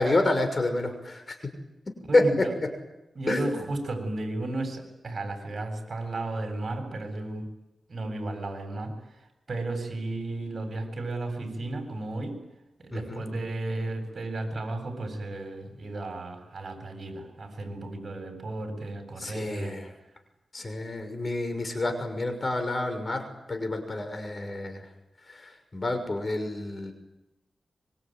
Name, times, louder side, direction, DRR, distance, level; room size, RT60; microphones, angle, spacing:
voice 1, 0.0-1.4 2.1-2.5 3.3-3.6 12.9-13.2 19.2-19.9 20.5-24.8 25.3-26.9, left 2 dB, 40° left, 7 dB, 6.2 m, -28 dB
voice 2, 2.1-2.5 3.1-7.5 7.9-8.9 9.5-12.4 12.8-19.8, right 2 dB, 50° right, 5 dB, 8.0 m, -33 dB
25.0 x 24.0 x 9.4 m, 0.95 s
cardioid pair, 70°, 0 cm